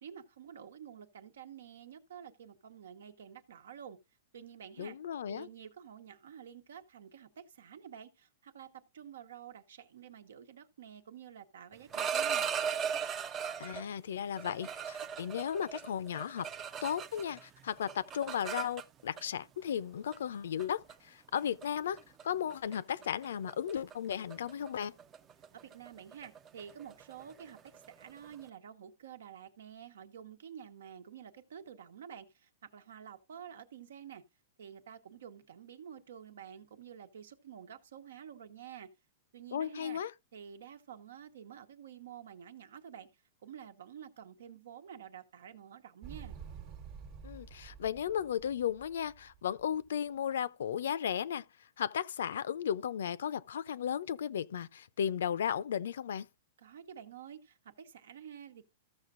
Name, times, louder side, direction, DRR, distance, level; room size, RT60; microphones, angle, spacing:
voice 1, 0.0-4.0 4.3-5.0 5.3-12.5 25.5-34.2 34.6-38.9 39.3-40.0 40.3-46.4 56.6-58.6, right 8 dB, 85° right, 1.2 m, -50 dB
voice 2, 4.8-5.5 13.6-16.5 16.8-24.9 39.5-40.1 47.2-51.4 51.8-56.3, left 9 dB, 80° left, 0.5 m, -35 dB
sound 1, 11.7-13.8 14.4-17.4 17.7-19.2 20.1-20.3 20.6-20.9 21.4-21.6 22.0-22.2 22.5-22.8 23.0-28.4, right 7 dB, 20° right, 0.4 m, -38 dB
Motorcycle, 46.0-49.9, right 6 dB, 35° right, 1.1 m, -50 dB
14.5 x 6.5 x 2.5 m
supercardioid pair, 165°, 0 cm